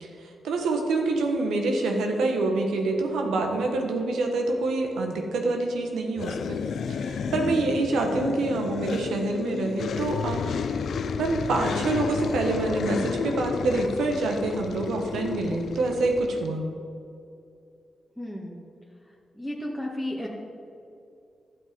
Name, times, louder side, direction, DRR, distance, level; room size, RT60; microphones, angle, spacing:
voice 1, 0.0-6.6 6.9-10.7 11.2-16.6, right 2 dB, 90° right, 2 dB, 1.4 m, -26 dB
sound 1, 6.2-16.5, left 6 dB, 75° left, 0.5 m, -31 dB
voice 2, 7.3-7.6 18.2-18.6 19.4-20.3, left 1 dB, ahead, -4 dB, 1.7 m, -33 dB
12.0 x 7.8 x 5.3 m, 2.6 s
cardioid pair, 60°, 0 cm